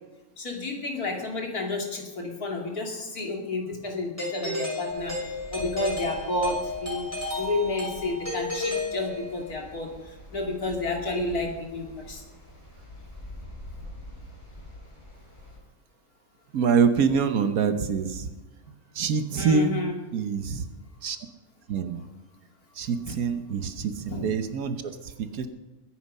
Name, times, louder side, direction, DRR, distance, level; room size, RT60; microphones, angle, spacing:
voice 1, 0.4-5.2 5.5-7.1 7.4-9.9 10.3-12.2 19.4-19.9 24.1-24.3, left 2 dB, 80° left, 1 dB, 3.2 m, -30 dB
Doorbell, 4.2-9.6, left 2 dB, 10° left, 6.0 m, -33 dB
sound 1, 4.9-15.6, left 1 dB, 30° left, 5.1 m, -46 dB
voice 2, 16.5-18.3 18.7-19.8 20.1-20.7 21.0-21.2 21.7-22.0 22.7-25.5, right 6 dB, 70° right, 9 dB, 1.5 m, -25 dB
22.0 x 9.5 x 5.5 m, 1.1 s
omnidirectional pair, 1.6 m